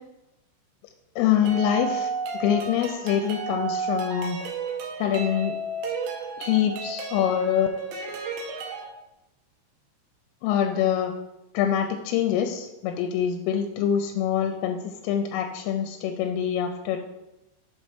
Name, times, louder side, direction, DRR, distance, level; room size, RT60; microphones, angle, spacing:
voice 1, 1.2-2.1 2.4-4.4 5.0-5.6 6.4-7.7 10.4-11.2 11.5-17.0, left 9 dB, 90° left, 5 dB, 3.1 m, -25 dB
sound 1, 1.5-8.8, right 4 dB, 80° right, 2.7 m, -32 dB
7.2 x 4.2 x 4.9 m, 0.93 s
omnidirectional pair, 5.7 m